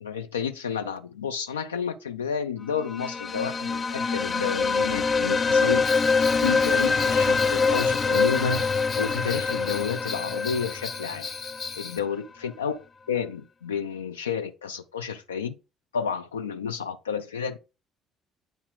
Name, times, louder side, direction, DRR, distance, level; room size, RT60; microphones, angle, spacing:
voice 1, 0.0-5.8 6.4-8.7 9.0-11.3 11.8-15.5 15.9-17.6, left 6 dB, 80° left, 0.6 m, -31 dB
sound 1, 2.9-11.7, left 4 dB, 35° left, 0.5 m, -24 dB
Bell, 5.8-12.0, left 5 dB, 50° left, 1.7 m, -37 dB
9.4 x 4.2 x 3.9 m
figure-of-eight pair, 50°, 0 cm